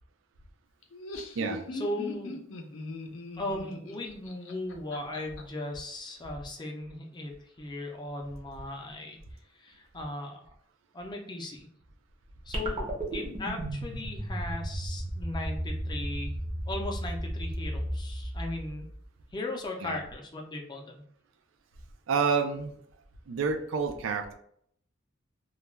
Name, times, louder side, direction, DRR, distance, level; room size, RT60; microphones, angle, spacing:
Laughter, 0.8-5.4, left 2 dB, 80° left, 0.5 m, -40 dB
voice 1, 1.7-2.4 3.4-9.2 9.5-10.4 10.9-11.7 12.5-16.3 16.7-18.9 19.3-21.0, left 2 dB, 20° left, 1 dB, 0.4 m, -37 dB
sound 1, 12.5-19.0, right 1 dB, 30° right, 0.6 m, -34 dB
voice 2, 22.1-22.7 23.3-24.3, right 5 dB, 80° right, 6 dB, 0.4 m, -29 dB
2.3 x 2.2 x 3.1 m, 0.66 s
head